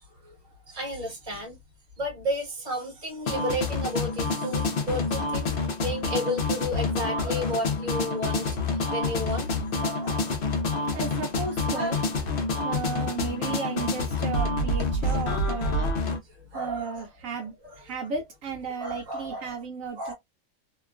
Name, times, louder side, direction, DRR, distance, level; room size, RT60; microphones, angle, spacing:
voice 1, 0.7-1.6 2.0-10.4 10.9-11.0 11.7-12.0 15.7-15.9 16.4-17.1 17.4-17.8 18.8-19.6 20.0-20.1, equal, 35° right, 1.3 m, -33 dB
sound 1, 3.3-16.2, left 3 dB, 55° left, 0.7 m, -28 dB
voice 2, 10.9-12.0 12.6-15.9 16.5-20.1, right 5 dB, 70° right, 1.1 m, -34 dB
2.9 x 2.2 x 2.3 m
omnidirectional pair, 1.5 m